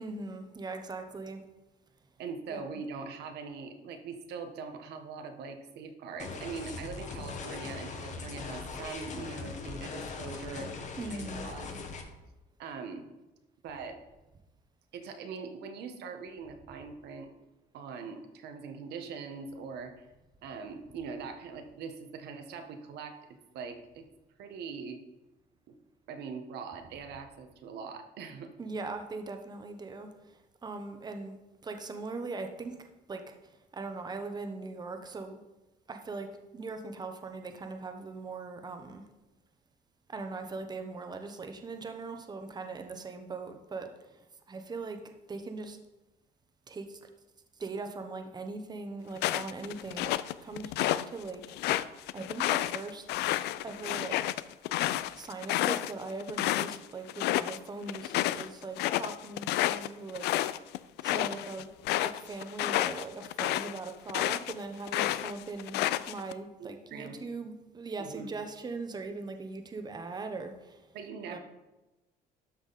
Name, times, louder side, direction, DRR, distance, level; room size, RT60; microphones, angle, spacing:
voice 1, 0.0-1.4 2.5-2.8 11.0-11.5 28.6-31.4 31.6-35.4 35.9-36.3 36.5-39.0 40.1-45.8 46.7-47.1 47.6-51.4 52.1-53.2 53.6-54.2 55.1-60.3 61.0-61.7 62.0-70.9 71.3-71.4, right 3 dB, 25° right, 6 dB, 1.0 m, -40 dB
voice 2, 2.2-10.7 11.0-11.7 12.6-13.1 13.6-14.0 14.9-17.3 17.7-20.1 20.4-23.2 23.5-24.1 24.4-25.0 25.7-25.8 26.1-28.5 66.6-67.2 68.0-68.3 70.9-71.4, right 5 dB, 75° right, 6 dB, 1.4 m, -42 dB
sound 1, 6.2-12.0, left 4 dB, 45° left, 1.5 m, -40 dB
sound 2, 49.2-51.0 51.4-56.8 57.1-57.6 57.9-64.5 64.9-66.3, left 15 dB, 80° left, 0.4 m, -30 dB
12.5 x 5.9 x 4.2 m, 1.1 s
cardioid pair, 110°, 17 cm